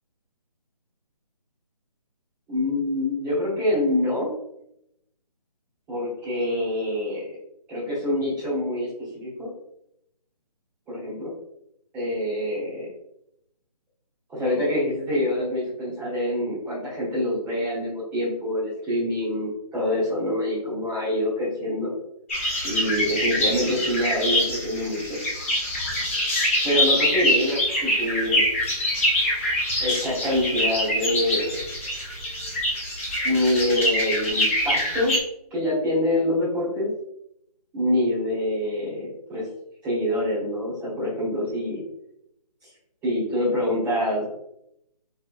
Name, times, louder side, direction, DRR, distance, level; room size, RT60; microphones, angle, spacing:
voice 1, 2.5-4.3 5.9-7.2 7.7-9.5 10.9-11.3 11.9-12.9 14.3-21.9 22.6-25.2 26.6-28.4 29.8-31.6 33.2-35.2 35.5-36.9 37.7-39.5 39.8-41.8 43.0-44.2, left 1 dB, 5° right, -11 dB, 1.4 m, -25 dB
sound 1, 22.3-35.2, left 1 dB, 20° left, 0.7 m, -25 dB
4.5 x 3.3 x 2.5 m, 0.78 s
hypercardioid pair, 170°, 21 cm